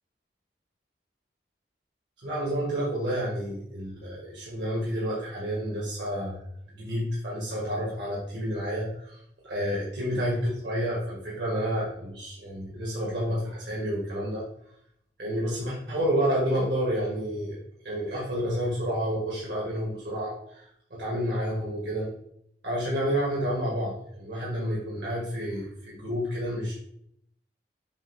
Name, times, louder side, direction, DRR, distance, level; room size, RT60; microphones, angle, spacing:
voice 1, 2.2-6.4 6.7-9.2 9.4-14.4 15.2-17.6 17.8-22.1 22.6-26.7, equal, 90° right, -5 dB, 1.7 m, -30 dB
7.1 x 2.7 x 5.7 m, 0.71 s
head